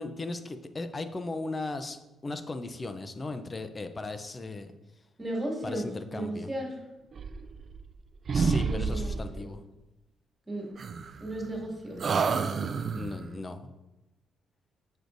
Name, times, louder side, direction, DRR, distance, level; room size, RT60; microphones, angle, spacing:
voice 1, 0.0-4.7 5.6-6.5 8.3-9.6 13.0-13.7, left 2 dB, 25° left, 9 dB, 0.5 m, -37 dB
voice 2, 5.2-6.8 8.6-9.4 10.5-10.7 11.2-12.0, right 1 dB, 20° right, -2 dB, 2.2 m, -35 dB
sound 1, 7.1-8.0 8.3-9.4 10.8-11.6 12.0-13.2, right 5 dB, 45° right, 0.3 m, -29 dB
6.7 x 6.2 x 2.6 m, 0.99 s
cardioid pair, 90°, 0 cm